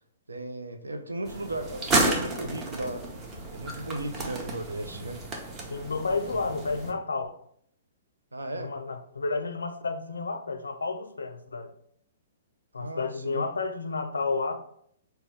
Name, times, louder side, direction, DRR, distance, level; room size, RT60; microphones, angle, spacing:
voice 1, 0.3-3.0 3.5-5.2 8.3-8.7 12.8-13.4, right 1 dB, 90° right, 0.4 m, -35 dB
sound 1, 1.3-6.9, right 2 dB, 25° right, 0.7 m, -31 dB
voice 2, 5.7-7.4 8.5-11.7 12.7-14.5, left 4 dB, 80° left, 0.4 m, -31 dB
4.0 x 2.2 x 3.2 m
hypercardioid pair, 120°, 0 cm